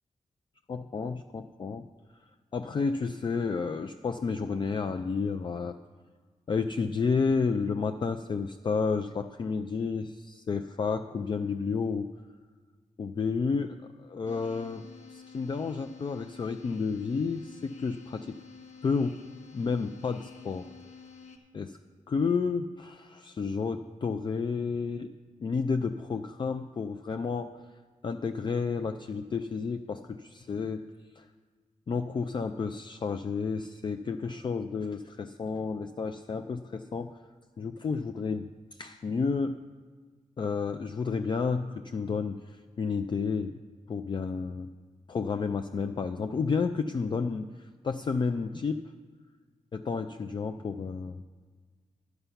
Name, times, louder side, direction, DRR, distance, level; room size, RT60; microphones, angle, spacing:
voice 1, 0.7-1.9 2.5-5.8 6.5-12.1 13.0-18.4 18.8-19.2 19.5-20.7 21.5-21.8 22.1-25.1 25.4-27.6 28.0-30.9 31.2-31.3 31.9-37.2 37.6-39.6 40.4-43.6 43.9-44.7 45.1-48.8 49.7-51.2, left 5 dB, 40° left, 7 dB, 0.3 m, -31 dB
sound 1, 14.3-21.4, left 5 dB, 60° left, 1.1 m, -50 dB
11.0 x 8.0 x 5.7 m, 1.5 s
wide cardioid pair, 120°, 13 cm